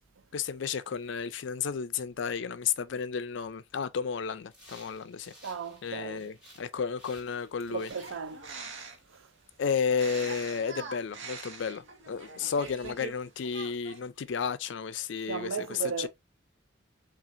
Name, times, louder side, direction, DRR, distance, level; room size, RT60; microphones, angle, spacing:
voice 1, 0.3-5.3 5.8-7.9 9.6-16.1, left 6 dB, 70° left, 0.4 m, -32 dB
sound 1, 4.5-6.7 7.0-9.6, equal, 5° right, 2.4 m, -56 dB
voice 2, 5.4-6.3 7.7-8.4 9.1-9.2 12.3-12.5 15.3-16.1, right 5 dB, 90° right, 0.5 m, -36 dB
sound 2, 7.9-9.1 9.8-13.2 13.4-14.0, right 4 dB, 75° right, 0.9 m, -43 dB
5.7 x 2.4 x 2.6 m
head